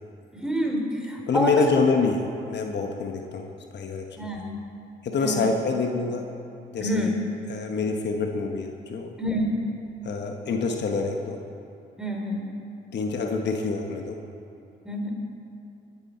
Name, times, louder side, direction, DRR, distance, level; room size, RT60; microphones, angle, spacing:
voice 1, 0.4-1.6 4.2-4.5 5.2-5.5 6.8-7.2 9.2-9.5 12.0-12.5 14.8-15.1, equal, 5° right, 0 dB, 3.4 m, -27 dB
voice 2, 1.3-4.4 5.0-6.2 6.7-7.2 7.5-9.1 10.0-11.4 12.9-14.2, left 4 dB, 60° left, 3 dB, 1.2 m, -26 dB
19.5 x 9.9 x 4.4 m, 2.8 s
supercardioid pair, 70°, 20 cm